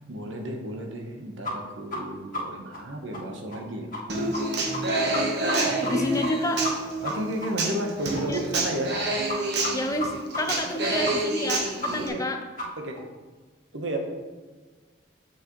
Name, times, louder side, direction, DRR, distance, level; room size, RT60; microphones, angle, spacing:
voice 1, 0.1-4.3 5.6-5.9 7.0-8.9 10.7-11.0 12.0-12.2 12.8-13.0 13.7-14.0, right 1 dB, 80° right, 3 dB, 1.1 m, -33 dB
sound 1, 1.4-1.5 1.9-2.0 2.3-2.4 2.7-2.8 3.1-3.2 3.5-3.6 3.9-4.0 4.3-4.4 4.7-4.8 5.1-5.6 5.8-5.9 6.2-6.3 6.6-6.7 7.0-7.1 7.4-7.5 7.8-7.9 8.1-8.2 8.5-8.6 8.9-9.0 9.3-9.4 9.6-9.7 10.0-10.1 10.3-10.4 10.7-10.8 11.0-11.1 11.4-11.5 11.8-11.9 12.2-12.3 12.6-12.7 13.0-13.1, left 1 dB, 45° left, 1.5 m, -32 dB
Human voice / Acoustic guitar, 4.1-12.1, right 2 dB, 60° right, 1.1 m, -28 dB
voice 2, 5.8-6.6 8.3-8.4 9.7-12.4, left 1 dB, 15° left, 5 dB, 0.6 m, -29 dB
7.4 x 6.4 x 3.1 m, 1.3 s
head